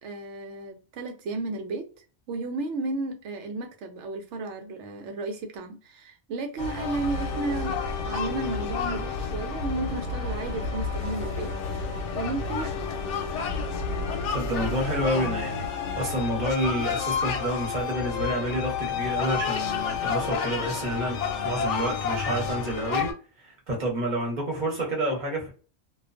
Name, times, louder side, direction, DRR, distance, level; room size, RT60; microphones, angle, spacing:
voice 1, 0.0-7.8 8.1-11.5 12.1-12.7, right 3 dB, 80° right, 1.0 m, -33 dB
sound 1, 6.6-23.1, left 5 dB, 85° left, 0.9 m, -30 dB
voice 2, 14.3-15.7 16.0-21.2 21.4-23.1 23.4-25.5, right 1 dB, 45° right, 1.0 m, -29 dB
2.4 x 2.3 x 2.4 m
omnidirectional pair, 1.2 m